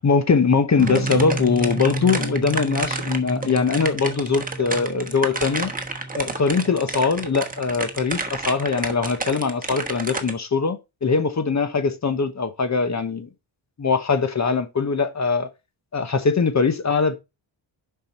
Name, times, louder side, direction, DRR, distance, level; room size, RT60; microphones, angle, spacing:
voice 1, 0.0-5.7 6.1-13.3 13.8-15.5 15.9-17.1, left 5 dB, 35° left, 1.0 m, -22 dB
sound 1, 0.8-8.0, right 1 dB, ahead, 1.5 m, -32 dB
sound 2, 0.8-10.3, right 3 dB, 20° right, 1.2 m, -30 dB
7.4 x 5.7 x 4.1 m
wide cardioid pair, 135°, 47 cm